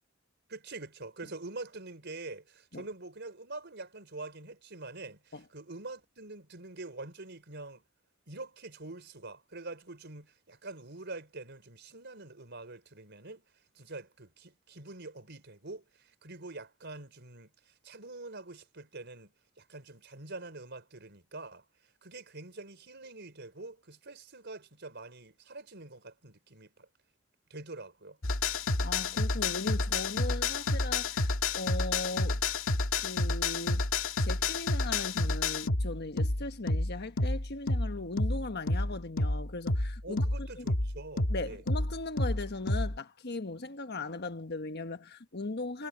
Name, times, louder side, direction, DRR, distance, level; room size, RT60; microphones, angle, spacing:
voice 1, 0.5-7.8 8.3-13.4 13.7-21.6 22.0-26.9 27.5-28.2 40.0-41.6, right 2 dB, 60° right, 4.7 m, -45 dB
sound 1, 28.2-43.0, left 2 dB, 85° left, 2.0 m, -30 dB
voice 2, 28.8-32.4 33.0-33.8 34.2-40.6 41.3-45.9, left 2 dB, 55° left, 1.4 m, -38 dB
head